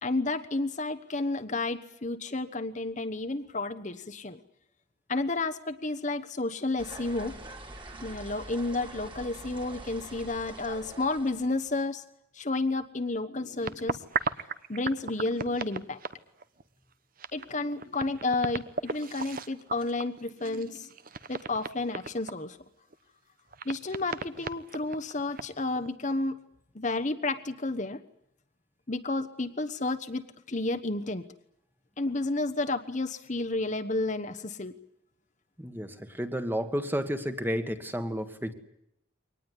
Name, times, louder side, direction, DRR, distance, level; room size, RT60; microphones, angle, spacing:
voice 1, 0.0-4.4 5.1-7.3 8.0-12.0 12.3-14.0 14.7-16.0 17.3-20.9 21.3-22.6 23.6-26.4 26.7-28.0 28.9-31.2 32.0-34.7, left 2 dB, 40° left, 8 dB, 1.1 m, -31 dB
sound 1, 6.8-11.8, right 2 dB, 25° right, 2.9 m, -45 dB
sound 2, 13.6-16.6 16.9-17.0 17.2-22.3 22.9-23.0 23.5-25.9, right 4 dB, 45° right, 1.1 m, -36 dB
voice 2, 35.6-38.5, equal, 10° right, 8 dB, 1.7 m, -31 dB
23.5 x 19.0 x 9.8 m, 0.80 s
head